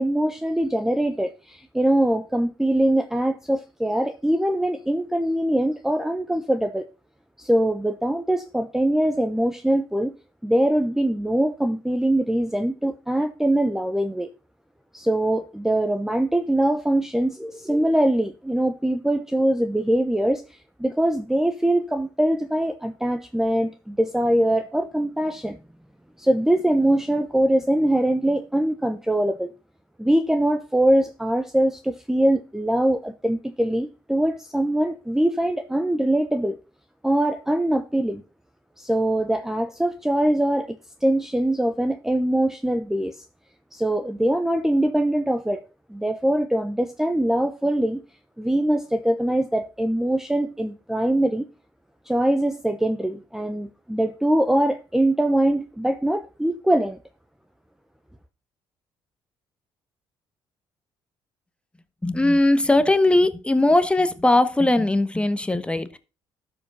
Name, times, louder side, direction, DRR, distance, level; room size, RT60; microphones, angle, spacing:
voice 1, 0.0-6.9 7.4-10.1 10.4-14.3 14.9-20.4 20.8-25.6 26.2-29.5 30.0-36.6 37.0-38.2 38.8-43.2 43.7-45.6 45.9-48.0 48.4-51.4 52.1-57.0, right 1 dB, 5° right, 0.9 m, -22 dB
voice 2, 62.0-66.0, left 2 dB, 10° left, 1.2 m, -19 dB
12.5 x 5.1 x 5.5 m
cardioid pair, 85°, 10 cm